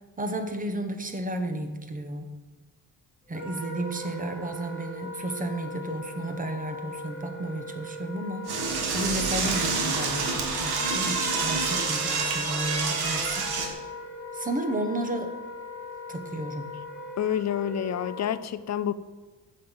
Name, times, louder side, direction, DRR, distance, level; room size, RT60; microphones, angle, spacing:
voice 1, 0.2-2.3 3.3-8.4 8.9-13.5 14.3-15.3 16.1-16.7, right 1 dB, 20° right, 6 dB, 1.1 m, -32 dB
Wind instrument woodwind instrument, 3.3-18.2, left 2 dB, 5° right, 2.7 m, -39 dB
Door / Toilet flush, 8.5-13.7, right 4 dB, 85° right, 2.1 m, -27 dB
voice 2, 17.2-18.9, left 10 dB, 45° left, 14 dB, 0.5 m, -28 dB
9.6 x 7.2 x 7.9 m, 1.3 s
wide cardioid pair, 175°, 38 cm